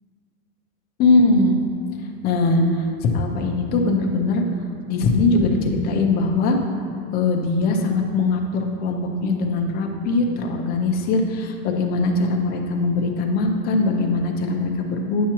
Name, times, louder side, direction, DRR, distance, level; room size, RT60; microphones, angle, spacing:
voice 1, 1.0-1.6 2.2-4.4 4.9-6.6 7.1-15.3, left 3 dB, 25° left, 2 dB, 0.5 m, -21 dB
10.0 x 5.9 x 2.9 m, 2.3 s
supercardioid pair, 150°, 42 cm